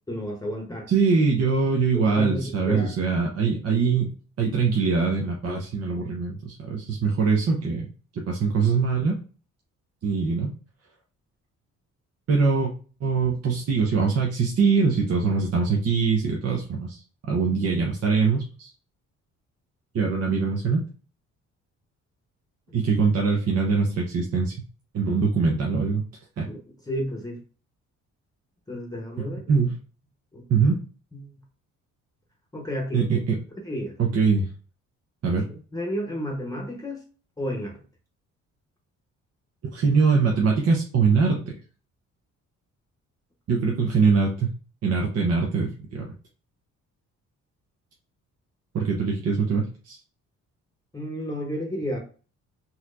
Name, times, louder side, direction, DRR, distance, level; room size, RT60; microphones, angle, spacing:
voice 1, 0.1-0.9 2.1-3.0 25.1-25.2 26.4-26.6 26.9-27.4 28.7-29.4 30.3-30.7 31.1-31.3 32.5-33.1 33.6-34.0 35.5-37.0 37.4-37.8 50.9-52.0, equal, 10° left, 0 dB, 0.9 m, -32 dB
voice 2, 0.9-9.2 10.0-10.5 12.3-12.7 13.0-17.0 17.3-18.7 19.9-20.9 22.7-24.5 24.9-26.0 26.4-26.5 29.5-29.8 30.5-30.8 32.9-33.4 34.0-34.5 35.2-35.5 39.7-41.4 43.5-44.5 44.8-46.1 48.7-50.0, right 5 dB, 55° right, -1 dB, 0.9 m, -23 dB
4.1 x 2.9 x 2.5 m, 0.38 s
cardioid pair, 90°, 30 cm